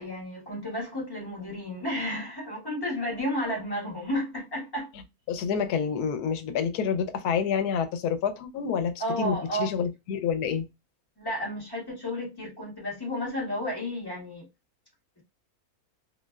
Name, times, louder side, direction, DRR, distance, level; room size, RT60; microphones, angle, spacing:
voice 1, 0.0-4.9 9.0-9.8 11.2-14.5, equal, 15° left, 1.4 m, -32 dB
voice 2, 5.3-10.7, left 7 dB, 90° left, 1.1 m, -28 dB
3.0 x 2.7 x 2.3 m
omnidirectional pair, 1.6 m